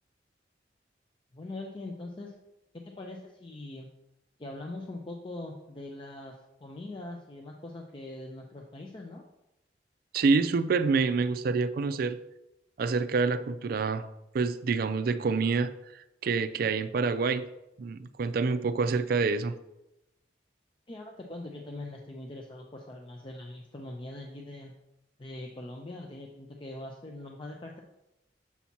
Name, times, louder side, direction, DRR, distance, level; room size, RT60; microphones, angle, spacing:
voice 1, 1.3-2.3 2.7-3.9 4.4-9.2 20.9-24.7 25.2-27.8, left 2 dB, 30° left, 1 dB, 0.5 m, -42 dB
voice 2, 10.1-12.2 12.8-14.1 14.3-17.5 17.8-19.5, right 4 dB, 55° right, 12 dB, 0.4 m, -27 dB
7.1 x 2.8 x 5.8 m, 0.89 s
head